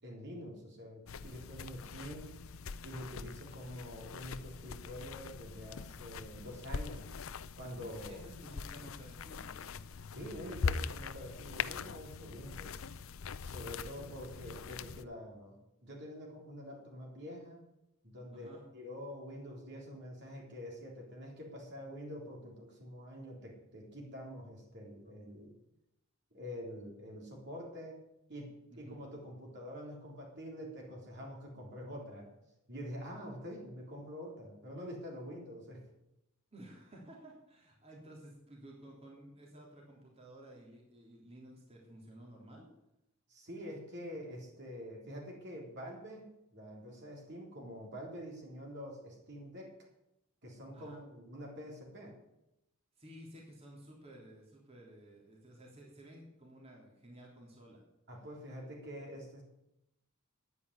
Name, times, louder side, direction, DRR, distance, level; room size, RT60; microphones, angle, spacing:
voice 1, 0.0-2.3 2.8-7.1 7.6-8.2 10.1-12.9 13.4-17.7 18.0-25.5 26.3-28.0 28.3-32.3 32.7-35.8 43.3-49.8 50.4-52.2 58.1-59.4, equal, 55° right, -1 dB, 3.9 m, -46 dB
sound 1, 1.1-15.0, left 5 dB, 70° left, 0.6 m, -42 dB
voice 2, 8.1-10.0 18.3-18.6 28.7-29.0 36.5-42.7 50.7-51.0 53.0-57.8, right 1 dB, 30° right, -2 dB, 3.3 m, -54 dB
10.0 x 9.6 x 9.7 m, 0.86 s
head